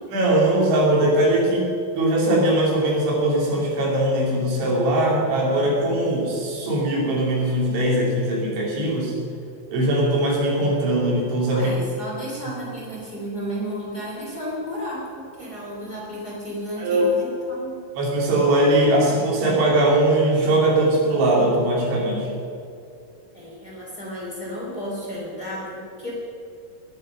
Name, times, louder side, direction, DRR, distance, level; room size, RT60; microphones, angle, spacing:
voice 1, 0.1-9.1 9.7-11.7 16.8-17.1 18.0-22.3, right 1 dB, 80° right, -3 dB, 5.5 m, -20 dB
voice 2, 11.5-17.7 23.3-26.1, equal, 25° left, -5 dB, 3.2 m, -33 dB
21.0 x 10.5 x 5.4 m, 2.6 s
omnidirectional pair, 5.3 m